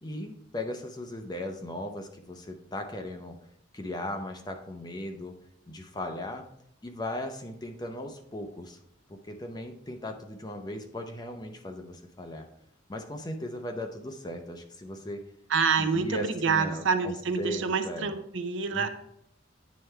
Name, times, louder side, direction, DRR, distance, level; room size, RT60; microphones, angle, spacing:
voice 1, 0.0-3.4 3.7-5.4 5.7-6.5 6.8-8.8 9.2-12.5 12.9-15.2 15.8-18.1 18.7-18.9, left 1 dB, 20° left, 4 dB, 0.6 m, -37 dB
voice 2, 15.5-18.9, right 5 dB, 65° right, 8 dB, 0.6 m, -27 dB
9.1 x 3.3 x 4.5 m, 0.76 s
head